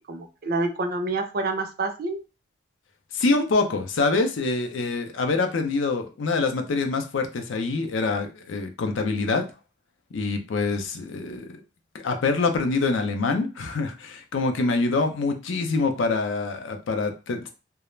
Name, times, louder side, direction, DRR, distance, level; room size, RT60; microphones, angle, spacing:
voice 1, 0.1-2.2, right 3 dB, 50° right, 6 dB, 0.4 m, -27 dB
voice 2, 3.1-9.4 10.1-11.6 12.0-17.5, left 3 dB, 75° left, 5 dB, 0.5 m, -25 dB
2.3 x 2.0 x 3.1 m, 0.31 s
head